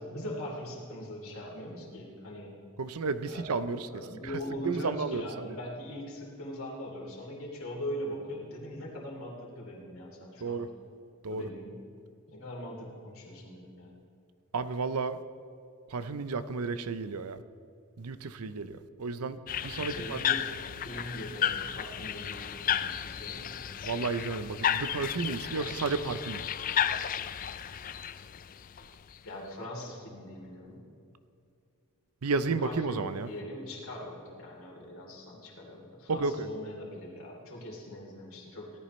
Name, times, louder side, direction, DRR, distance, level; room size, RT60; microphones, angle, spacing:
voice 1, 0.1-2.6 3.2-10.7 11.3-11.8 12.3-14.0 19.8-20.6 20.8-23.6 29.2-30.9 32.4-38.8, left 1 dB, 70° left, -2 dB, 3.1 m, -41 dB
voice 2, 2.8-3.9 4.2-4.4 4.6-5.5 10.4-10.7 11.2-11.5 14.5-15.2 15.9-17.4 18.0-20.2 23.8-26.4 32.2-33.3 36.1-36.5, right 4 dB, 85° right, 12 dB, 0.6 m, -32 dB
sound 1, 19.5-29.2, left 9 dB, 40° left, 0.3 m, -33 dB
18.0 x 13.5 x 3.2 m, 2.5 s
head